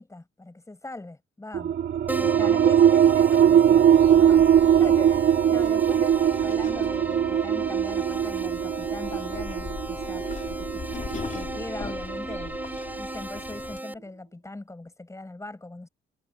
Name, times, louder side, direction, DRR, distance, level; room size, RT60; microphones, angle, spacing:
voice 1, 0.0-1.8 2.2-12.6 13.0-15.9, left 2 dB, 15° left, 7.6 m, -41 dB
sound 1, 1.5-12.8, right 9 dB, 65° right, 3.2 m, -21 dB
Keyboard (musical), 2.1-13.9, right 1 dB, 10° right, 7.6 m, -36 dB
sound 2, 3.9-13.8, left 5 dB, 40° left, 3.6 m, -41 dB
cardioid pair, 90°, 20 cm